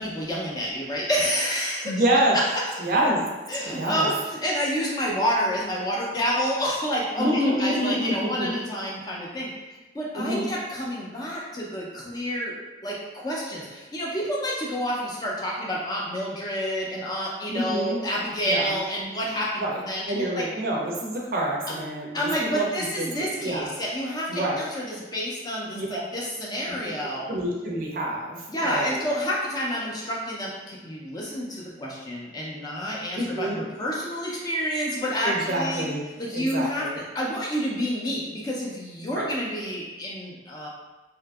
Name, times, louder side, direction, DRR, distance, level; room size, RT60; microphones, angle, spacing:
voice 1, 0.0-1.9 2.3-2.4 3.5-9.5 9.9-12.5 12.8-20.4 22.1-27.3 28.5-35.8 36.2-36.9 37.1-40.7, equal, 20° left, -4 dB, 0.4 m, -29 dB
voice 2, 1.8-2.4 2.8-3.2 3.8-4.1 7.2-8.6 10.1-10.5 17.5-18.0 18.5-18.8 19.6-19.8 20.1-22.7 23.0-23.7 24.3-24.6 25.7-26.0 26.8-26.9 27.3-29.0 33.1-33.6 35.2-36.0 36.3-37.0 39.1-39.3, right 1 dB, 50° right, -2 dB, 0.4 m, -27 dB
2.7 x 2.4 x 2.3 m, 1.2 s
head